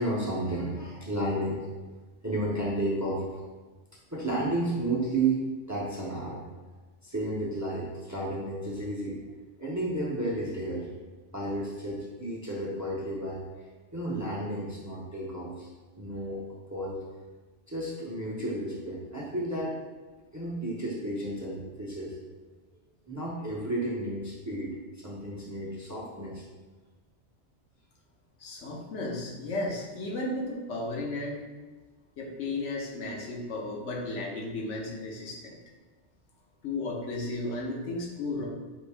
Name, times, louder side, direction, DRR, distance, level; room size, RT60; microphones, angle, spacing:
voice 1, 0.0-1.7 2.2-3.2 4.1-6.4 7.0-9.2 9.6-10.9 11.3-15.7 15.9-17.0 17.7-19.8 20.3-22.1 23.1-26.4, right 1 dB, 20° right, -5 dB, 0.5 m, -32 dB
voice 2, 28.4-31.4 32.2-35.6 36.6-38.5, left 2 dB, 75° left, -1 dB, 1.1 m, -34 dB
5.1 x 2.6 x 3.3 m, 1.3 s
omnidirectional pair, 1.2 m